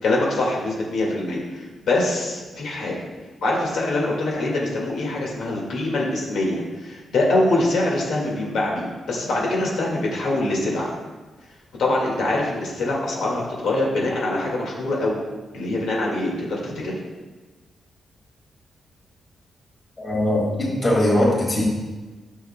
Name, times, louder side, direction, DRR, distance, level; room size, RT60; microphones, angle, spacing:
voice 1, 0.0-3.0 3.4-10.9 11.8-15.2 15.5-17.0, left 2 dB, 85° left, -3 dB, 1.8 m, -24 dB
voice 2, 20.0-21.6, left 1 dB, 25° left, -3 dB, 1.9 m, -20 dB
12.0 x 6.4 x 2.2 m, 1.3 s
wide cardioid pair, 150°, 0 cm